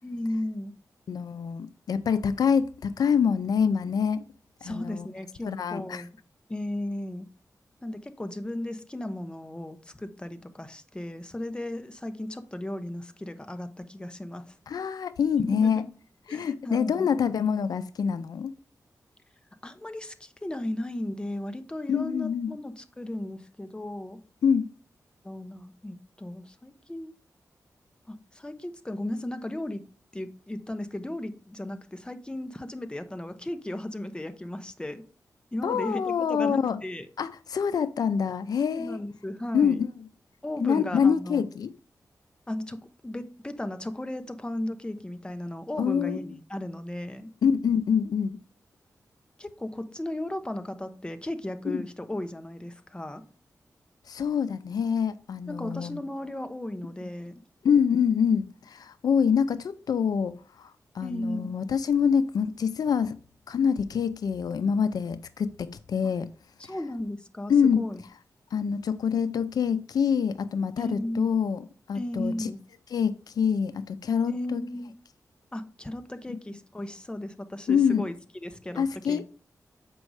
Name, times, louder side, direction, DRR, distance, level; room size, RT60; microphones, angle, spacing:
voice 1, 0.0-0.7 4.6-6.1 6.5-7.3 7.8-14.5 15.4-15.9 16.3-17.1 19.6-24.2 25.2-27.2 28.1-29.8 30.1-35.0 35.5-37.1 38.7-39.8 40.4-41.4 42.5-47.3 49.4-53.2 55.5-57.3 61.0-61.5 66.6-68.0 70.8-71.2 71.9-72.6 74.2-74.9 75.5-78.1 78.4-79.2, left 1 dB, 15° left, 0.9 m, -35 dB
voice 2, 1.1-4.2 4.6-5.1 5.4-6.0 14.7-15.8 16.3-18.5 21.9-22.5 24.4-24.7 35.6-36.8 37.2-39.0 39.5-39.9 40.6-41.7 45.8-46.2 47.4-48.4 51.7-51.8 54.1-56.0 57.6-63.2 63.5-66.3 66.6-66.7 67.5-67.8 68.5-72.5 72.9-74.6 77.7-78.1 78.8-79.2, left 7 dB, 80° left, 0.5 m, -26 dB
7.6 x 5.3 x 4.8 m
cardioid pair, 75°, 6 cm